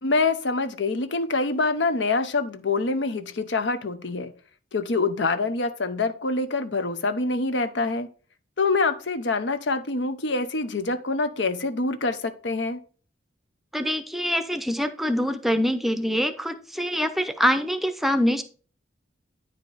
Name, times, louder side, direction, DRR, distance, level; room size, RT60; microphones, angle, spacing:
voice 1, 0.0-4.3 4.7-8.1 8.6-12.8, left 3 dB, 80° left, 11 dB, 0.8 m, -25 dB
voice 2, 13.7-18.4, equal, ahead, 10 dB, 0.5 m, -24 dB
9.5 x 5.1 x 4.0 m, 0.39 s
head